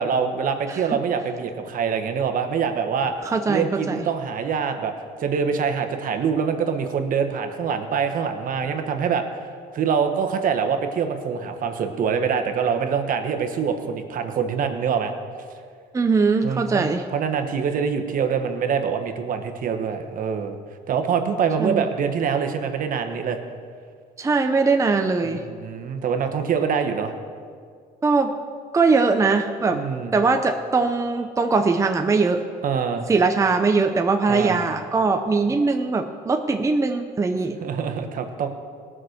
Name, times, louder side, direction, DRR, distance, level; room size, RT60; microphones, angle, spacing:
voice 1, 0.0-3.1 3.5-4.9 5.2-9.5 9.7-15.1 16.4-20.6 20.9-23.4 25.2-27.1 29.7-30.1 32.6-33.1 34.3-34.6 37.6-38.5, right 6 dB, 55° right, 6 dB, 1.3 m, -25 dB
voice 2, 0.7-1.0 3.2-4.0 15.9-17.0 21.6-21.8 24.2-25.4 28.0-28.3 28.7-29.8 30.1-32.4 33.1-37.6, right 4 dB, 20° right, 5 dB, 0.6 m, -21 dB
17.5 x 6.2 x 6.5 m, 2.1 s
cardioid pair, 110°, 17 cm